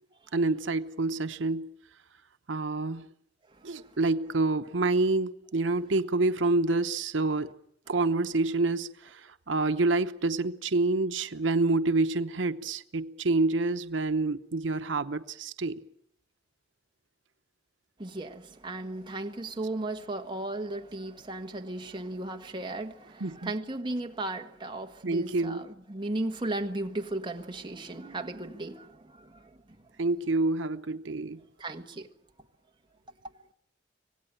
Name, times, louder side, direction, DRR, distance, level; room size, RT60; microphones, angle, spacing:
voice 1, 0.3-1.7 2.5-3.1 3.6-7.5 7.9-15.8 23.2-23.5 25.0-25.6 28.0-28.2 30.0-31.4, right 3 dB, 85° right, 0.9 m, -27 dB
voice 2, 18.0-29.5 31.6-32.1, right 2 dB, 25° right, 1.5 m, -36 dB
25.5 x 17.5 x 8.9 m
head